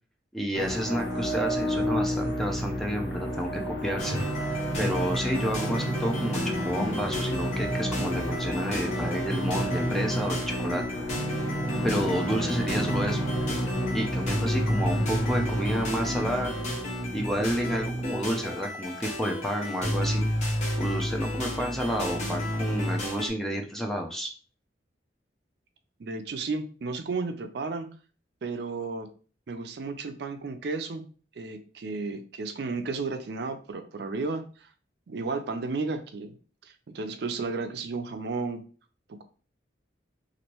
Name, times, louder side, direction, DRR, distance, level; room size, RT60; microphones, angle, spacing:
voice 1, 0.3-10.8 11.8-13.3 13.9-16.5 17.1-20.3 20.8-24.3, equal, ahead, 1 dB, 0.4 m, -30 dB
sound 1, 0.5-18.6, equal, 70° left, 0.9 m, -31 dB
sound 2, 4.0-23.3, equal, 40° left, 0.9 m, -31 dB
voice 2, 26.0-27.9 28.4-29.1 29.5-31.0 31.4-34.7 35.1-36.4 36.6-38.6 39.1-39.2, right 3 dB, 60° right, 8 dB, 0.4 m, -33 dB
3.0 x 2.5 x 2.9 m, 0.39 s
head